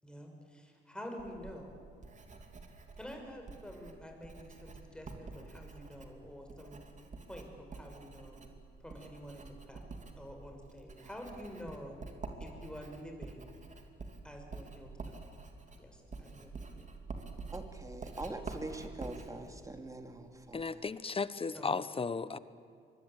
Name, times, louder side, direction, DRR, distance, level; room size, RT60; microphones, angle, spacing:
voice 1, 0.0-1.7 3.0-6.8 7.3-8.4 8.8-9.9 10.2-12.0 12.4-13.6 14.2-15.2 15.7-16.9 21.5-21.7, equal, 5° left, 2 dB, 6.1 m, -48 dB
Writing, 1.2-20.7, right 3 dB, 40° right, 3.0 m, -48 dB
voice 2, 17.5-20.8, right 2 dB, 15° right, 6 dB, 2.8 m, -44 dB
voice 3, 20.5-22.4, left 4 dB, 30° left, 15 dB, 1.0 m, -35 dB
25.0 x 21.5 x 9.1 m, 2.3 s
cardioid pair, 90°, 20 cm